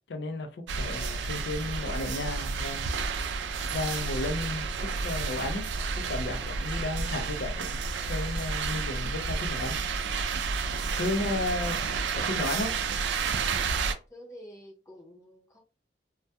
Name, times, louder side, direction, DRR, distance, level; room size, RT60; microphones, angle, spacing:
voice 1, 0.1-2.9 3.7-4.7 5.0-5.7 6.1-7.7 8.1-9.8 11.0-11.8 12.1-12.7, left 2 dB, 80° left, 0.4 m, -33 dB
sound 1, 0.7-13.9, right 4 dB, 85° right, 0.4 m, -31 dB
voice 2, 14.1-15.6, equal, 20° left, 0.6 m, -50 dB
2.2 x 2.1 x 2.7 m
head